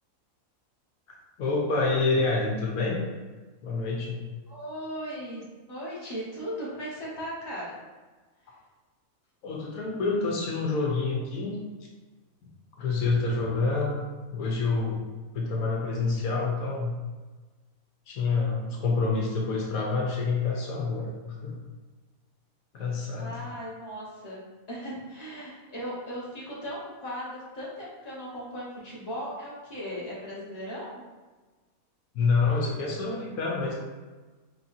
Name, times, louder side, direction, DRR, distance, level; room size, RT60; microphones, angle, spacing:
voice 1, 1.1-3.0 3.6-4.2 9.4-11.6 12.4-12.5 12.8-14.0 14.3-15.1 15.3-17.0 18.1-21.2 21.4-21.6 22.7-23.4 32.1-33.7, left 3 dB, 80° left, -1 dB, 1.1 m, -27 dB
voice 2, 4.5-7.8 8.4-8.5 23.2-24.4 24.7-31.0, equal, 30° left, -8 dB, 1.3 m, -37 dB
4.3 x 3.5 x 2.7 m, 1.3 s
omnidirectional pair, 1.5 m